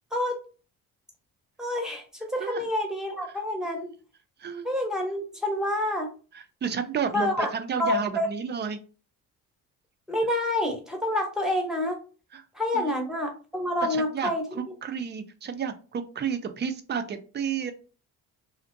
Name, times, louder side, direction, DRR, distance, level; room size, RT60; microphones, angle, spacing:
voice 1, 1.6-3.9 4.6-6.1 7.1-7.5 7.8-8.3 10.1-12.0 12.5-14.7, left 1 dB, ahead, 1 dB, 0.8 m, -28 dB
voice 2, 6.3-8.8 12.3-12.4 12.7-13.0 13.8-17.7, right 7 dB, 30° right, 8 dB, 0.4 m, -32 dB
2.6 x 2.1 x 2.5 m, 0.36 s
cardioid pair, 90°, 34 cm